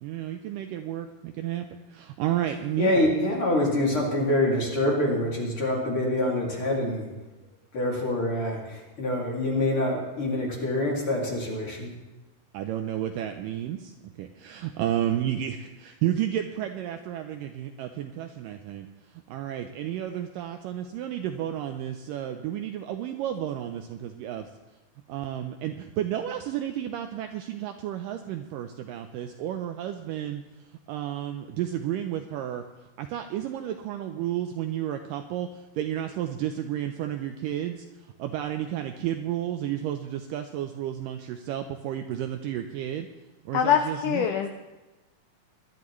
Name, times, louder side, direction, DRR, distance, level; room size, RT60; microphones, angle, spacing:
voice 1, 0.0-3.1 12.5-13.9 14.2-18.9 19.1-24.5 25.1-30.4 30.9-32.6 33.0-37.9 38.2-43.1 43.5-44.3, right 11 dB, 80° right, 6 dB, 2.0 m, -32 dB
voice 2, 2.8-7.1 7.7-11.9, left 1 dB, 40° left, -2 dB, 2.9 m, -26 dB
voice 3, 43.5-44.5, left 8 dB, 80° left, 6 dB, 1.9 m, -23 dB
22.0 x 12.0 x 3.1 m, 1.1 s
omnidirectional pair, 4.4 m